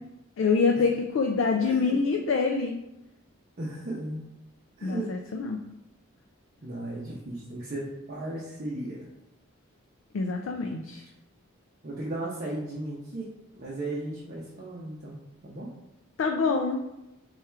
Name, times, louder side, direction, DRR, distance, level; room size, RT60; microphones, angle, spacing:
voice 1, 0.4-2.7 4.8-5.6 10.1-11.0 16.2-16.8, left 4 dB, 65° left, 3 dB, 0.3 m, -25 dB
voice 2, 1.6-2.0 3.6-4.2 4.8-5.1 6.6-9.0 11.8-13.3 13.6-15.7, right 1 dB, 40° right, -5 dB, 0.6 m, -35 dB
3.3 x 2.3 x 4.4 m, 0.91 s
head